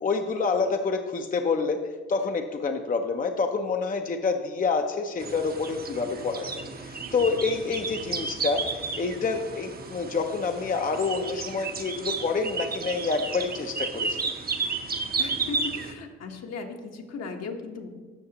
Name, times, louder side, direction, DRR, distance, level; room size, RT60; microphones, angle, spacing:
voice 1, 0.0-1.8 2.1-6.5 6.8-14.2, left 4 dB, 30° left, 5 dB, 0.6 m, -27 dB
sound 1, 5.2-15.9, right 4 dB, 30° right, 0.8 m, -33 dB
voice 2, 15.2-17.9, left 4 dB, 60° left, 3 dB, 1.2 m, -37 dB
13.5 x 5.6 x 2.9 m, 1.4 s
supercardioid pair, 70°, 29 cm